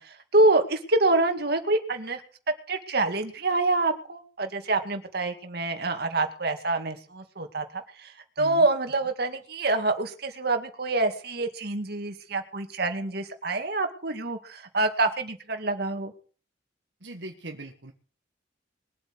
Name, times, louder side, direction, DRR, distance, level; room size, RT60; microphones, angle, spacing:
voice 1, 0.0-2.2 2.7-8.1 8.4-16.1, right 2 dB, 60° right, 6 dB, 2.3 m, -26 dB
voice 2, 17.0-17.9, right 2 dB, 75° right, 2 dB, 1.6 m, -40 dB
22.0 x 8.5 x 6.2 m, 0.40 s
head